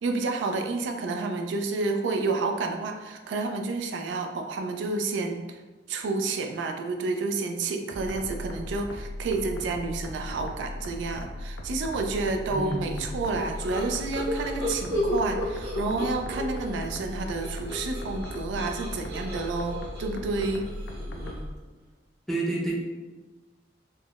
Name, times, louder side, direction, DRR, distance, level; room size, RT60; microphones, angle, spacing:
voice 1, 0.0-5.6 5.9-20.7, right 3 dB, 85° right, 4 dB, 0.3 m, -30 dB
sound 1, 7.9-21.5, left 1 dB, 90° left, 0.4 m, -37 dB
voice 2, 12.5-13.1 22.3-22.7, right 2 dB, ahead, -4 dB, 0.4 m, -30 dB
sound 2, 13.3-16.8 17.1-21.5, equal, 65° right, 1.1 m, -33 dB
3.4 x 2.0 x 2.3 m, 1.2 s
head